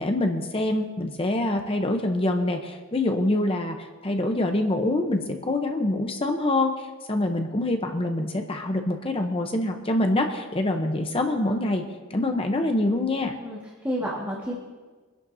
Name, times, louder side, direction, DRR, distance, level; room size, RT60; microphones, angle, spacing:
voice 1, 0.0-11.8 12.1-13.3, left 1 dB, 25° left, 4 dB, 0.8 m, -25 dB
voice 2, 13.4-14.6, equal, 10° right, -5 dB, 1.7 m, -31 dB
24.0 x 11.0 x 2.8 m, 1.4 s
head